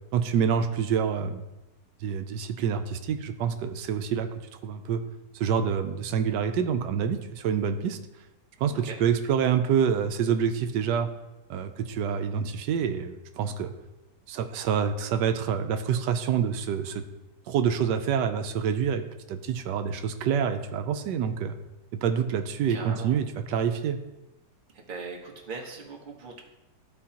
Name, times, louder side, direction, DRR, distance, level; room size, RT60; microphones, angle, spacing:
voice 1, 0.1-1.4 2.0-5.0 5.3-8.0 8.6-11.1 11.5-13.7 14.3-17.0 17.5-19.0 19.3-21.6 21.9-24.0, right 7 dB, 90° right, 8 dB, 1.2 m, -27 dB
voice 2, 22.7-23.2 24.7-26.4, right 4 dB, 35° right, 0 dB, 1.2 m, -40 dB
13.5 x 4.6 x 2.9 m, 0.99 s
omnidirectional pair, 1.8 m